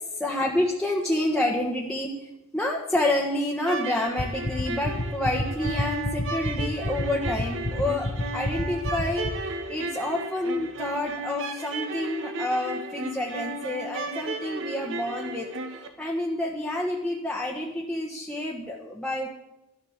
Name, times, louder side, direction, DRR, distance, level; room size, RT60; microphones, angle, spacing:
voice 1, 0.1-15.5 16.0-19.3, left 1 dB, 5° left, -3 dB, 1.4 m, -28 dB
sound 1, 3.6-15.9, right 2 dB, 60° right, 1.7 m, -35 dB
sound 2, 4.2-9.3, left 1 dB, 35° left, 1.2 m, -27 dB
13.0 x 12.0 x 7.3 m, 0.93 s
head